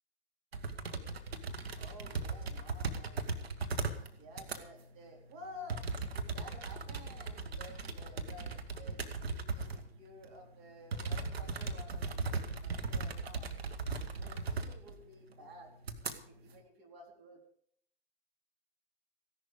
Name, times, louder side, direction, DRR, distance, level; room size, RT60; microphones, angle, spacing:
sound 1, 0.5-4.1 4.3-4.6 5.7-9.9 10.2-10.3 10.9-15.0 15.3-15.4 15.8-16.1, right 4 dB, 85° right, 2.0 m, -38 dB
voice 1, 1.8-3.3 4.2-5.8 6.1-9.0 9.3-13.5 14.2-15.7 16.1-17.4, left 1 dB, 45° right, 2 dB, 4.1 m, -53 dB
16.0 x 11.5 x 5.3 m, 0.65 s
hypercardioid pair, 110°, 30 cm